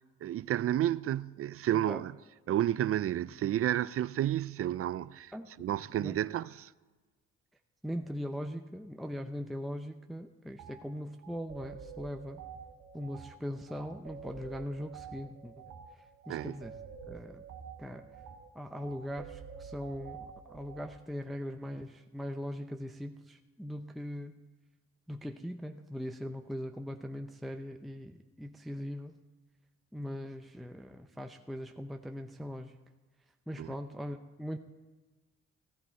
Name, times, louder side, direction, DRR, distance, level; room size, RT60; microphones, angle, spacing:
voice 1, 0.2-2.1 2.5-5.3 5.6-6.7 16.3-16.6 33.6-33.7, right 12 dB, 50° right, 0.4 m, -31 dB
voice 2, 7.8-12.4 12.9-15.5 16.3-16.7 17.1-17.4 17.8-18.1 18.5-24.4 25.1-29.2 29.9-32.8 33.5-34.6, equal, ahead, 0.6 m, -40 dB
sound 1, 10.6-10.8 11.2-21.0, right 7 dB, 80° right, 1.4 m, -48 dB
15.5 x 11.0 x 4.4 m
cardioid pair, 90°, 30 cm